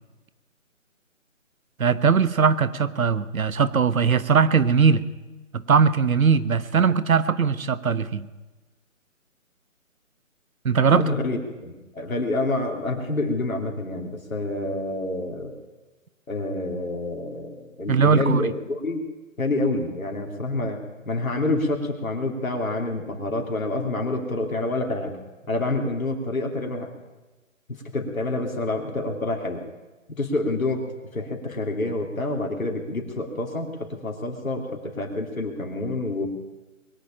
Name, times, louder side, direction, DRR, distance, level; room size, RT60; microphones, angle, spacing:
voice 1, 1.8-5.0 5.5-8.3 10.6-11.1 17.9-18.4, right 6 dB, 85° right, 16 dB, 1.0 m, -20 dB
voice 2, 10.9-15.6 16.3-19.0 19.4-25.2 25.5-26.9 27.7-29.6 30.2-30.9 31.1-36.3, left 2 dB, 85° left, 2 dB, 3.0 m, -28 dB
21.5 x 7.4 x 8.8 m, 1.2 s
hypercardioid pair, 160°, 40 cm